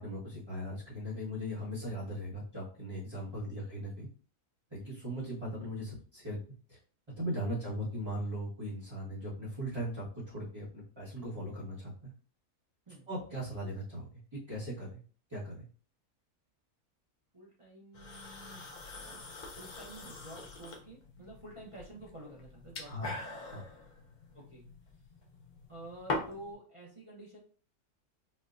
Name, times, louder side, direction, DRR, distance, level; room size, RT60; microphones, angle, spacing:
voice 1, 0.0-4.1 4.7-6.4 6.7-6.8 7.2-12.1 13.1-15.0 15.3-15.6 22.8-23.6, equal, 20° right, -9 dB, 0.9 m, -39 dB
voice 2, 17.3-23.3 24.3-25.0 25.7-27.4, right 1 dB, 40° right, -4 dB, 0.4 m, -50 dB
sound 1, 17.9-26.5, left 2 dB, 60° left, 0.4 m, -43 dB
4.2 x 2.1 x 2.4 m, 0.41 s
omnidirectional pair, 1.6 m